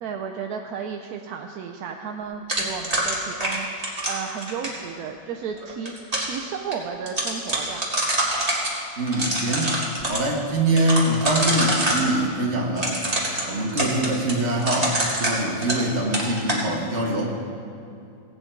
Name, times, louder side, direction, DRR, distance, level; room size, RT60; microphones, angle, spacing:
voice 1, 0.0-7.9, right 6 dB, 70° right, 3 dB, 0.9 m, -33 dB
sound 1, 2.5-4.8 5.6-6.4 6.7-6.8 7.1-8.7 9.1-10.2 10.8-12.1 12.8-15.9 16.1-16.6, right 1 dB, 20° right, 2.1 m, -25 dB
voice 2, 9.0-13.0 13.5-17.4, right 1 dB, 40° right, -1 dB, 1.7 m, -24 dB
17.5 x 8.9 x 4.5 m, 2.6 s
omnidirectional pair, 2.1 m